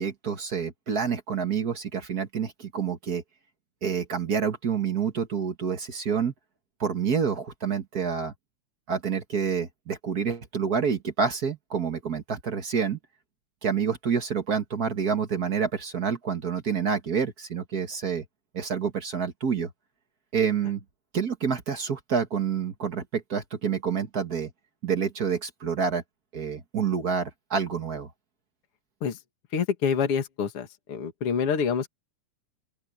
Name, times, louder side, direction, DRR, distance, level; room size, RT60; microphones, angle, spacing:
voice 1, 0.0-3.2 3.8-6.3 6.8-8.3 8.9-13.0 13.6-18.2 18.5-19.7 20.3-20.8 21.1-24.5 24.8-26.0 26.3-28.1, right 6 dB, 45° right, 1.3 m, -28 dB
voice 2, 29.5-31.9, left 6 dB, 45° left, 3.0 m, -27 dB
open air
omnidirectional pair, 3.7 m